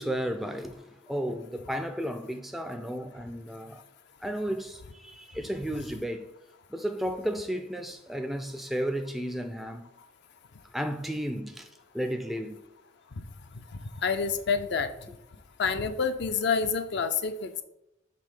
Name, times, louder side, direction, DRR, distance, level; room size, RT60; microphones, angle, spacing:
voice 1, 0.0-3.8 4.2-6.3 6.7-9.9 10.7-11.7 11.9-12.6, equal, ahead, 0.3 m, -33 dB
voice 2, 14.0-14.9 15.6-17.6, left 5 dB, 60° left, 0.5 m, -27 dB
5.2 x 3.5 x 5.4 m
head